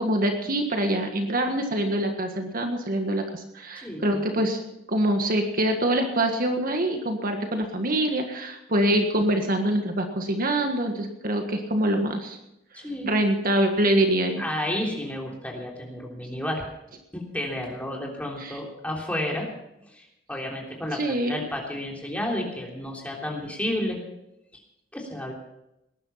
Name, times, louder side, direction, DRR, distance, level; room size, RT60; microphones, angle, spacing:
voice 1, 0.0-4.6 4.9-12.4 13.0-14.4 18.4-18.5 20.9-21.4, right 1 dB, 45° right, 4 dB, 1.6 m, -25 dB
voice 2, 3.8-4.4 12.7-13.1 14.4-16.7 17.1-19.5 19.8-24.0 24.5-24.6 24.9-25.3, left 1 dB, 5° left, -1 dB, 3.3 m, -31 dB
19.5 x 11.0 x 5.8 m, 0.84 s
head